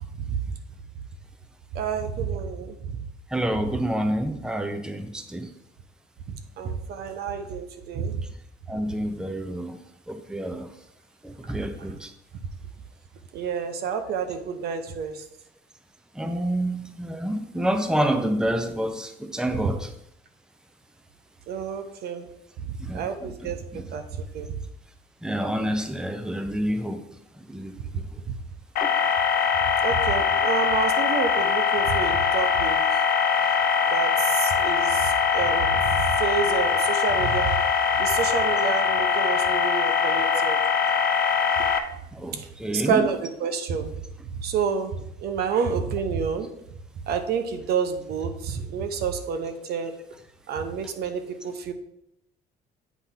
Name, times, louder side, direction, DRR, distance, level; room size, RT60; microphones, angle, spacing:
voice 1, 1.7-2.8 6.3-8.2 13.3-15.2 21.5-22.3 22.7-24.6 29.8-33.0 33.9-37.6 38.0-40.6 41.6-41.7 42.3-42.5 42.7-43.9 44.4-46.5 47.1-49.9 50.5-51.7, right 6 dB, 70° right, 8 dB, 0.9 m, -29 dB
voice 2, 3.3-5.5 8.7-9.8 10.1-10.7 11.2-12.1 16.2-19.9 22.8-23.3 23.7-23.8 25.2-27.0 27.5-27.7 42.2-43.1, right 1 dB, 5° right, 7 dB, 0.7 m, -28 dB
sound 1, 28.8-41.8, left 6 dB, 65° left, 0.9 m, -22 dB
8.3 x 3.5 x 5.7 m, 0.76 s
cardioid pair, 110°, 17 cm